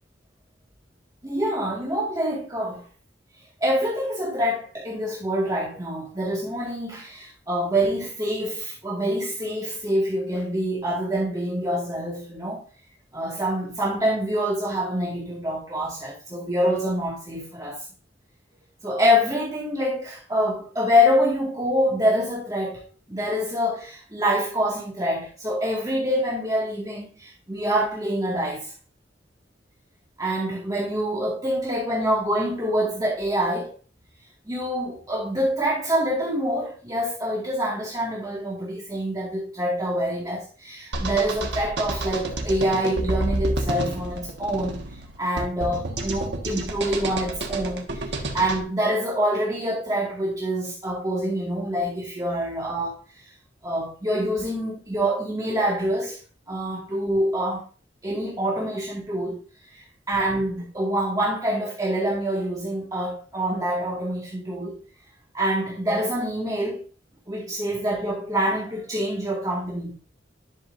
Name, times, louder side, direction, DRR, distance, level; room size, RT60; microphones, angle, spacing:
voice 1, 1.2-2.8 3.6-12.6 13.1-17.9 18.8-28.7 30.2-33.7 34.5-44.8 45.2-53.0 53.6-56.2 56.5-57.7 58.0-59.4 59.7-64.8 65.3-66.9 67.3-69.9, equal, 20° right, 2.0 m, -26 dB
sound 1, 40.9-48.6, right 2 dB, 70° right, 1.6 m, -29 dB
11.0 x 6.3 x 2.6 m
head